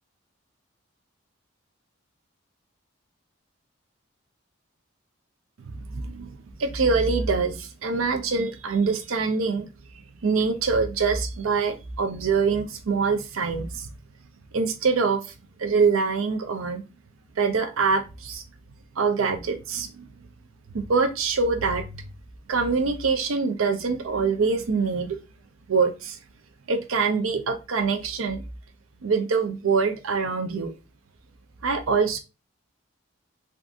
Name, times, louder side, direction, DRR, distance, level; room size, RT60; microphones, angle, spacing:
voice 1, 5.7-6.3 6.6-9.7 10.2-13.9 14.5-15.3 15.6-16.8 17.4-18.4 19.0-20.1 20.9-22.0 22.5-25.2 25.7-26.2 26.7-28.4 29.0-30.7 31.6-32.2, right 4 dB, 80° right, 0.5 m, -24 dB
3.4 x 2.6 x 2.4 m
head